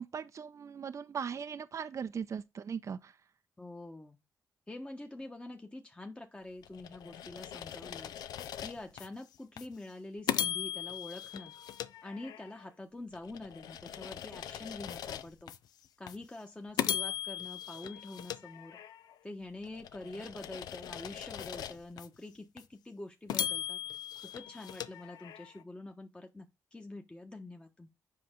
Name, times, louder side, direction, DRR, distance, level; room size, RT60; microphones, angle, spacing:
voice 1, 0.0-3.2, right 7 dB, 50° right, 0.6 m, -39 dB
voice 2, 3.6-4.2 4.7-11.6 12.0-15.5 16.0-18.8 19.2-23.8 24.3-27.9, left 2 dB, 15° left, 1.2 m, -46 dB
sound 1, 6.6-9.1 9.6-9.7 10.3-12.6 13.1-15.6 16.1-16.2 16.8-19.1 19.6-22.1 22.6-22.7 23.3-25.6, left 10 dB, 85° left, 0.5 m, -39 dB
7.7 x 5.3 x 3.7 m
cardioid pair, 65°, 7 cm